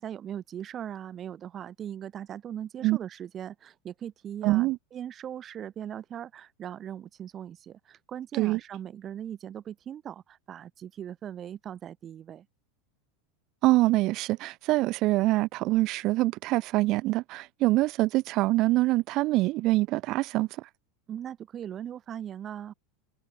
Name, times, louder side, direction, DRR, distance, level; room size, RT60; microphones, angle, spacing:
voice 1, 0.0-12.5 21.1-22.7, right 9 dB, 35° right, 1.3 m, -39 dB
voice 2, 4.4-4.8 8.4-8.6 13.6-20.7, right 19 dB, 50° right, 0.3 m, -25 dB
hypercardioid pair, 95°, 0 cm